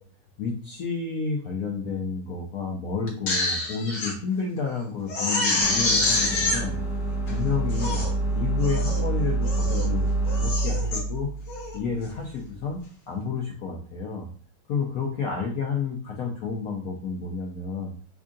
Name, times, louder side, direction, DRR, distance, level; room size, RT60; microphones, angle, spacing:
voice 1, 0.4-6.8 7.2-8.1 8.3-11.3 11.7-12.8 13.1-14.3 14.7-17.9, left 5 dB, 75° left, -1 dB, 0.8 m, -30 dB
Crying sobbing, 3.1-4.1 4.6-4.7 5.1-6.6 7.3-7.4 7.7-8.1 8.6-9.0 9.4-9.9 10.3-11.0 11.5-11.8, left 2 dB, 55° left, 1.2 m, -26 dB
sound 1, 5.6-12.7, right 2 dB, ahead, 0.6 m, -27 dB
3.6 x 2.4 x 3.8 m, 0.42 s
omnidirectional pair, 2.2 m